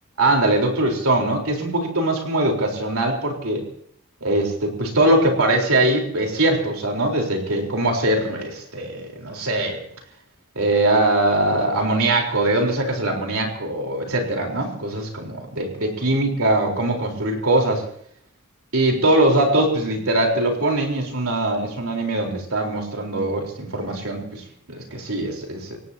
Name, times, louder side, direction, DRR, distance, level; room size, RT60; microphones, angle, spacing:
voice 1, 0.2-3.6 4.2-9.8 10.6-17.8 18.7-25.8, right 1 dB, 70° right, 1 dB, 4.2 m, -22 dB
28.5 x 17.0 x 2.9 m, 0.65 s
head